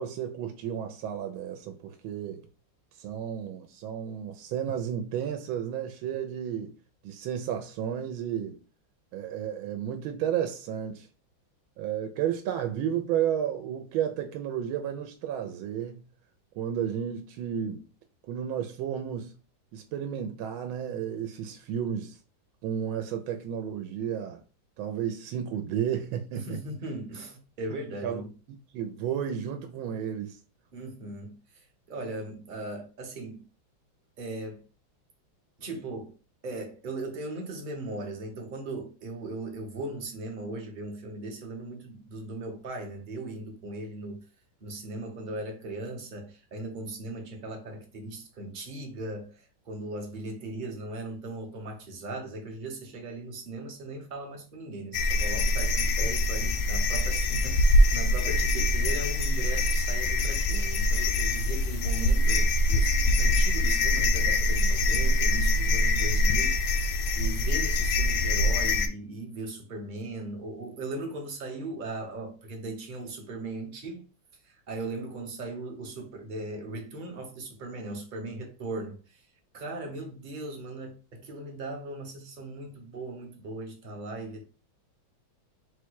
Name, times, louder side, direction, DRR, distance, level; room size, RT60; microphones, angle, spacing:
voice 1, 0.0-2.5 3.0-6.7 7.0-8.6 9.1-11.1 11.8-16.0 16.5-17.8 18.3-19.3 19.7-22.2 22.6-24.4 24.8-26.6 27.7-28.2 28.7-30.4, right 9 dB, 85° right, 1.4 m, -32 dB
voice 2, 26.3-28.3 30.7-33.4 34.2-34.6 35.6-36.1 36.4-44.2 44.6-66.6 67.2-74.0 74.4-79.2 79.5-84.4, right 2 dB, 40° right, 0.7 m, -38 dB
sound 1, 54.9-68.9, left 1 dB, 75° left, 1.2 m, -24 dB
4.2 x 2.2 x 4.5 m
omnidirectional pair, 2.2 m